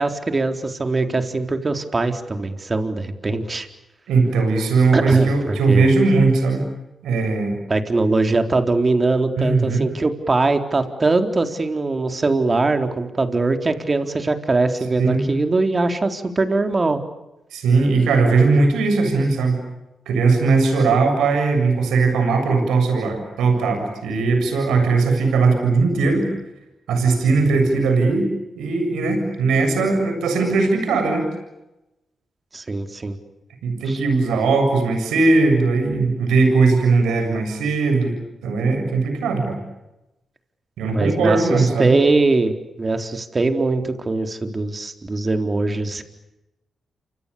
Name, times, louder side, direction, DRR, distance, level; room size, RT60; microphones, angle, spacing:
voice 1, 0.0-3.7 4.9-5.9 7.7-17.0 32.5-33.2 33.9-34.0 40.9-42.5 42.8-46.0, right 3 dB, 35° right, 6 dB, 4.0 m, -21 dB
voice 2, 4.1-6.6 7.0-7.6 9.4-9.8 15.0-15.2 17.5-19.6 20.1-26.3 26.9-28.3 28.6-31.3 33.6-38.1 38.4-39.6 40.8-42.0, right 3 dB, 90° right, 5 dB, 7.6 m, -19 dB
28.5 x 26.5 x 7.0 m, 0.95 s
cardioid pair, 55°, 0 cm